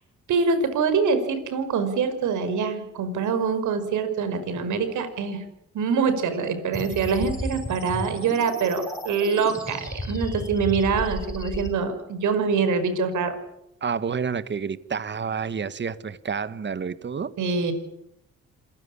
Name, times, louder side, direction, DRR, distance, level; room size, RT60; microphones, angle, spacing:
voice 1, 0.3-5.4 5.7-13.3 17.4-17.7, right 5 dB, 75° right, 10 dB, 5.5 m, -24 dB
sound 1, 6.7-11.7, left 1 dB, 10° left, 7.7 m, -33 dB
voice 2, 13.8-17.3, right 6 dB, 35° right, 15 dB, 1.6 m, -29 dB
27.5 x 16.5 x 10.0 m, 0.83 s
cardioid pair, 90°, 30 cm